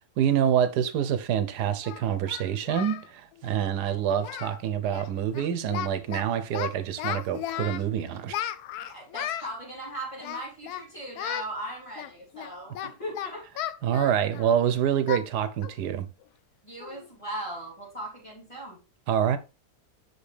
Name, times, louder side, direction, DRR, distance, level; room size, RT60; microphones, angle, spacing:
voice 1, 0.2-8.4 13.8-16.1 19.1-19.4, right 9 dB, 90° right, 1.3 m, -26 dB
Singing, 1.0-1.1 1.8-3.1 3.3-3.5 3.8-4.6 4.9-5.1 5.3-6.2 6.5-7.9 8.3-9.5 10.2-10.9 11.2-11.5 12.0-14.6 15.1-15.3 15.6-15.8 16.2-16.3 16.8-17.1, left 11 dB, 80° left, 1.1 m, -35 dB
voice 2, 8.9-13.5 16.6-18.8, right 1 dB, 20° left, 3.8 m, -38 dB
6.6 x 5.3 x 3.2 m
omnidirectional pair, 1.7 m